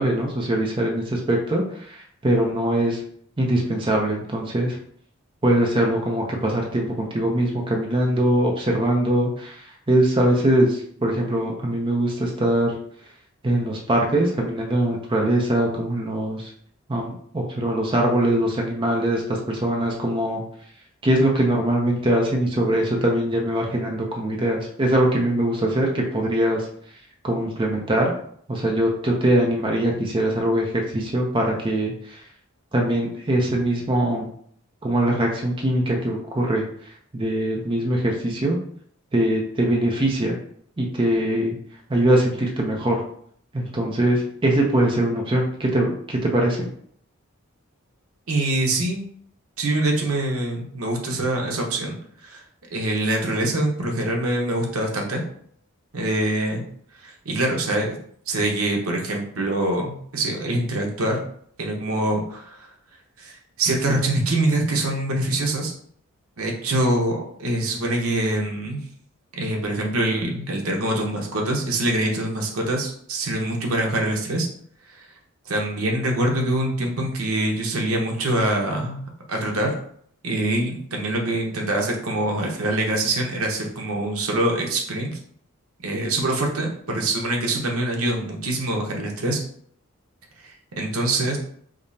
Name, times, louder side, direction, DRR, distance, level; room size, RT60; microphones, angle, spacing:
voice 1, 0.0-3.0 3.4-4.8 5.4-12.7 13.4-16.5 16.9-20.4 21.0-26.7 27.2-28.1 28.5-32.2 32.7-34.3 34.8-36.6 37.1-38.6 39.1-40.4 40.8-41.5 41.9-43.0 43.5-46.7, right 1 dB, 25° right, 0 dB, 0.5 m, -22 dB
voice 2, 48.3-49.1 49.6-52.4 52.7-55.2 55.9-56.6 57.0-58.0 58.3-61.2 61.6-62.7 63.2-65.7 66.4-68.8 69.3-74.5 74.9-75.1 75.5-79.7 80.2-85.1 85.8-89.4 90.4-91.4, right 1 dB, 90° right, 1 dB, 0.8 m, -24 dB
5.1 x 2.0 x 2.7 m, 0.62 s
head